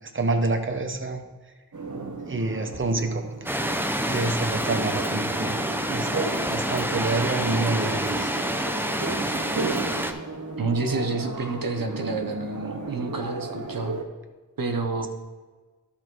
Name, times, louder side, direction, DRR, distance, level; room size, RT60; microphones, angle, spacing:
voice 1, 0.0-1.2 2.2-3.7 4.0-5.6 5.9-8.3, right 2 dB, 40° right, 5 dB, 0.9 m, -28 dB
sound 1, 1.7-14.0, right 3 dB, 60° right, 1.2 m, -34 dB
sound 2, 3.5-10.1, equal, 5° right, 0.8 m, -28 dB
voice 2, 10.6-14.0 14.6-15.1, right 3 dB, 85° right, 4 dB, 1.0 m, -29 dB
12.0 x 4.3 x 4.5 m, 1.3 s
wide cardioid pair, 50°, 33 cm